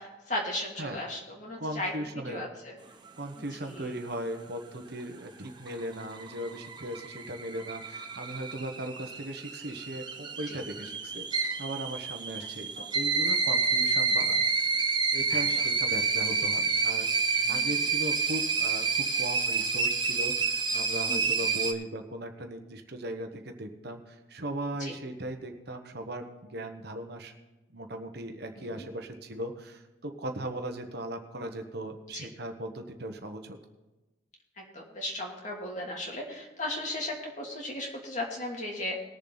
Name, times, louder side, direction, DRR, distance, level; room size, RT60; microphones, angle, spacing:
voice 1, 0.0-1.9 2.3-2.8 3.5-3.8 10.5-10.6 12.8-13.0 15.3-15.6 17.5-17.7 21.1-21.3 24.8-24.9 28.5-28.9 32.1-32.3 34.6-39.0, left 1 dB, 40° left, -1 dB, 2.7 m, -36 dB
voice 2, 1.6-2.4 3.2-14.4 15.1-17.1 17.4-27.3 27.7-33.6, right 1 dB, 55° right, 5 dB, 1.1 m, -38 dB
sound 1, 5.5-21.7, right 4 dB, 25° right, 0.9 m, -29 dB
20.0 x 7.2 x 4.0 m, 1.1 s
head